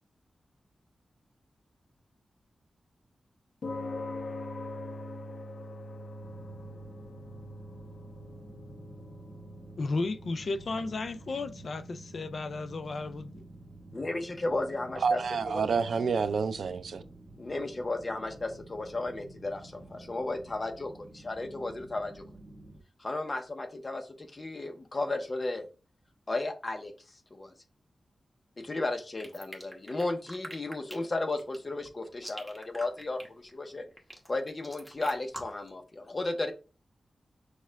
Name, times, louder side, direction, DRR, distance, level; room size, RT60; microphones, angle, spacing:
sound 1, 3.6-20.1, left 2 dB, 80° left, 0.9 m, -45 dB
sound 2, 6.2-22.8, right 2 dB, 25° right, 1.0 m, -51 dB
voice 1, 9.8-13.4, left 3 dB, 55° left, 0.4 m, -34 dB
voice 2, 13.9-15.2 15.5-15.6 17.4-22.2 23.0-25.6 26.3-26.9 27.3-27.5 28.6-33.2 33.5-33.8 34.3-36.5, left 2 dB, 30° left, 0.7 m, -34 dB
voice 3, 15.0-17.0, right 5 dB, 75° right, 0.4 m, -28 dB
sound 3, 29.2-35.7, equal, ahead, 1.0 m, -45 dB
6.5 x 2.4 x 3.4 m
wide cardioid pair, 160°, 0 cm